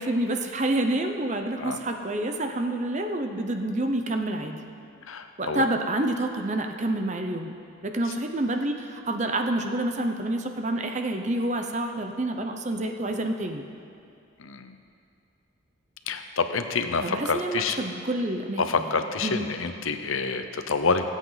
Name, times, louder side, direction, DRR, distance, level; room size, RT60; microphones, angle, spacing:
voice 1, 0.0-4.6 5.4-7.5 7.8-13.6 17.0-18.9 19.2-19.5, right 1 dB, 35° right, 5 dB, 0.8 m, -28 dB
voice 2, 5.1-5.6 14.4-14.7 16.1-17.8 18.6-21.1, left 4 dB, 90° left, 8 dB, 0.8 m, -27 dB
25.0 x 8.3 x 4.0 m, 2.4 s
head